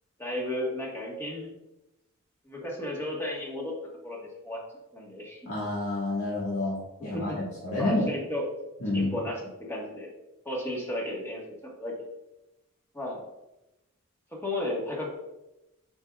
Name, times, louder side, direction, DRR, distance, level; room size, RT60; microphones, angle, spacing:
voice 1, 0.2-1.5 2.4-3.7 4.0-4.6 4.9-5.4 7.0-7.4 7.7-8.4 8.9-9.4 9.7-10.1 10.4-11.9 12.9-13.2 14.3-15.1, left 1 dB, 10° left, -3 dB, 1.4 m, -34 dB
voice 2, 5.4-8.1 8.8-9.1, left 2 dB, 80° left, -6 dB, 1.5 m, -29 dB
7.8 x 5.2 x 2.4 m, 0.92 s
head